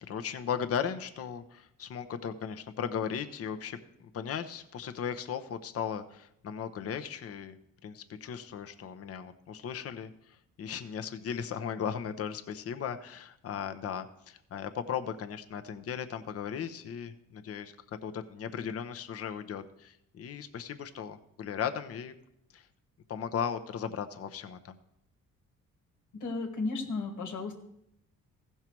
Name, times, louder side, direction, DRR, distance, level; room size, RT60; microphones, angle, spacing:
voice 1, 0.1-7.6 7.8-22.1 22.5-22.7 23.1-24.7, left 7 dB, 50° left, 8 dB, 0.8 m, -37 dB
voice 2, 26.1-27.5, left 3 dB, 85° left, 2 dB, 1.6 m, -34 dB
15.5 x 5.6 x 4.6 m, 0.78 s
cardioid pair, 90°, 30 cm